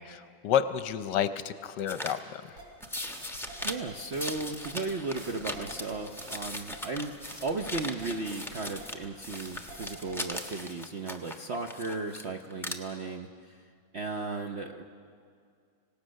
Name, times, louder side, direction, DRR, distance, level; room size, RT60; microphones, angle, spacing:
voice 1, 0.0-2.4, left 9 dB, 70° left, 12 dB, 1.2 m, -30 dB
sound 1, 1.9-2.2 2.8-3.7 4.1-9.0 9.2-12.2 12.5-12.7, left 1 dB, ahead, 0.6 m, -39 dB
sound 2, 2.6-10.5, right 2 dB, 75° right, 4.8 m, -47 dB
voice 2, 3.6-7.1 7.4-13.6 13.9-14.8, right 3 dB, 55° right, 4 dB, 0.7 m, -35 dB
26.0 x 17.5 x 6.4 m, 2.2 s
omnidirectional pair, 2.1 m